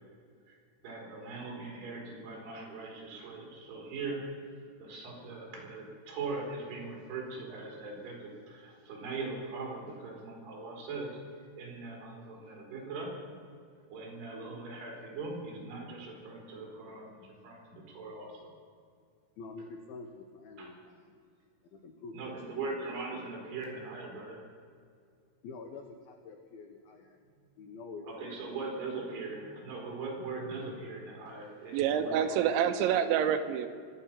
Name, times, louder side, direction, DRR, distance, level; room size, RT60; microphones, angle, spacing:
voice 1, 0.8-4.3 4.8-11.2 11.6-13.1 13.9-18.5 20.6-20.7 22.1-24.4 28.0-32.3, right 3 dB, 55° right, -1 dB, 5.6 m, -40 dB
voice 2, 19.4-21.2 21.7-22.7 25.4-27.2 27.6-28.7 31.8-32.5, left 4 dB, 85° left, 4 dB, 2.1 m, -47 dB
voice 3, 31.7-33.7, right 9 dB, 80° right, 8 dB, 2.8 m, -27 dB
23.5 x 8.9 x 5.9 m, 2.2 s
omnidirectional pair, 5.9 m